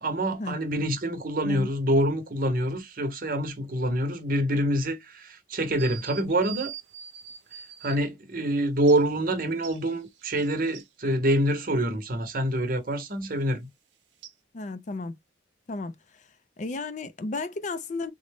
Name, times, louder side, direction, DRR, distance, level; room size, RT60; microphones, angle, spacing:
voice 1, 0.0-6.7 7.8-13.7, right 1 dB, 50° right, 0.9 m, -26 dB
sound 1, 5.8-8.0 8.9-9.0 9.6-10.9 14.2-14.3, right 10 dB, 85° right, 0.7 m, -42 dB
voice 2, 14.5-15.2 15.7-15.9 16.6-18.1, left 3 dB, 45° left, 0.4 m, -33 dB
3.8 x 2.1 x 3.3 m
head